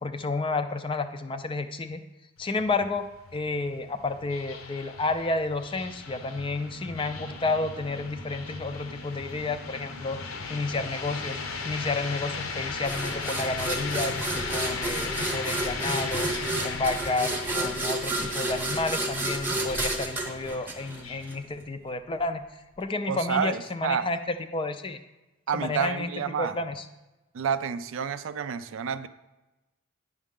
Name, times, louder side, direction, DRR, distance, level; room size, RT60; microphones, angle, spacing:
voice 1, 0.0-2.0 2.4-3.0 3.3-10.2 10.5-11.4 11.6-16.3 16.6-25.0 25.5-26.1 26.4-26.9, left 3 dB, 25° left, 9 dB, 0.4 m, -31 dB
sound 1, 2.4-21.4, left 4 dB, 70° left, 0.8 m, -37 dB
sound 2, 12.8-21.3, right 2 dB, 10° right, 0.9 m, -31 dB
voice 2, 23.1-24.1 25.5-26.6 27.3-29.1, right 7 dB, 60° right, 13 dB, 0.4 m, -29 dB
9.3 x 6.3 x 3.7 m, 1.0 s
head